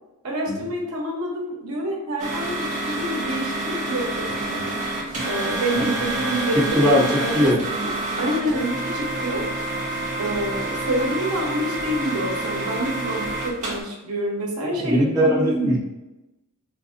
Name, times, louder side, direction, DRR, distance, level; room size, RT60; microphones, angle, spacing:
voice 1, 0.2-4.8 5.3-9.4 10.2-15.8, right 1 dB, 85° right, -1 dB, 0.9 m, -27 dB
sound 1, 2.2-13.8, right 2 dB, 35° right, 0.8 m, -28 dB
voice 2, 6.5-7.6 14.7-15.8, equal, 15° right, -9 dB, 1.1 m, -21 dB
3.8 x 2.6 x 2.5 m, 1.0 s
head